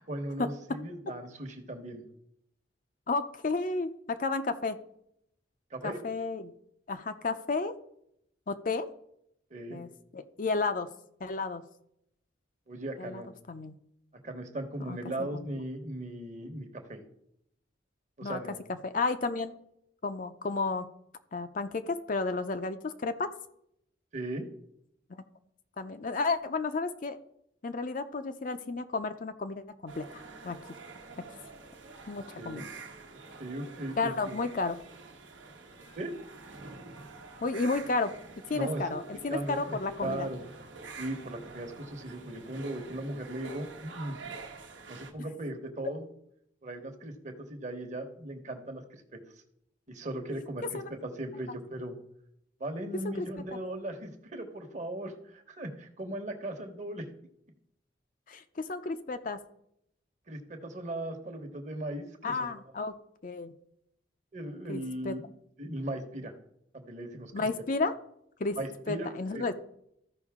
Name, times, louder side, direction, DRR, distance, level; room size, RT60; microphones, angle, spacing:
voice 1, 0.0-2.0 5.7-6.0 9.5-9.8 12.7-13.3 14.2-17.0 18.2-18.6 24.1-24.4 32.4-32.7 33.4-34.4 35.9-36.1 38.5-40.5 41.0-44.2 44.9-46.0 46.6-49.2 49.9-52.0 52.6-57.1 60.3-62.5 64.3-65.3 65.6-66.3 66.7-67.5 68.6-69.5, right 1 dB, 40° right, 5 dB, 1.1 m, -38 dB
voice 2, 3.1-4.8 5.8-6.5 6.9-7.7 8.5-8.9 9.7-9.9 10.1-10.9 11.2-11.6 13.0-13.2 13.5-13.8 14.9-15.3 18.2-18.4 18.8-19.5 20.0-20.9 21.3-23.3 25.1-25.2 25.8-27.2 27.6-30.6 32.1-32.6 34.0-34.8 37.4-38.1 38.5-40.3 50.7-50.9 53.2-53.3 58.3-59.4 62.2-62.9 63.2-63.5 64.7-65.2 67.3-67.9 68.4-68.6 68.9-69.5, left 3 dB, 45° left, 9 dB, 0.5 m, -32 dB
sound 1, 29.9-45.1, right 4 dB, 80° right, 1.1 m, -47 dB
14.0 x 5.4 x 3.6 m, 0.75 s
head